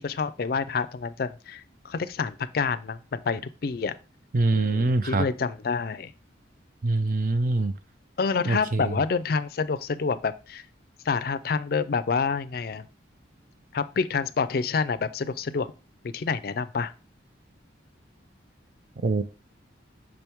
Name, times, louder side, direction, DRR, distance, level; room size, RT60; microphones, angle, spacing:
voice 1, 0.0-3.9 4.5-6.1 8.2-10.6 11.1-12.9 13.7-15.7 16.0-16.9, left 5 dB, 55° left, 0.4 m, -28 dB
voice 2, 4.3-5.2 6.8-7.7 8.5-8.9 19.0-19.2, right 2 dB, 45° right, 0.5 m, -24 dB
6.2 x 4.5 x 3.5 m
head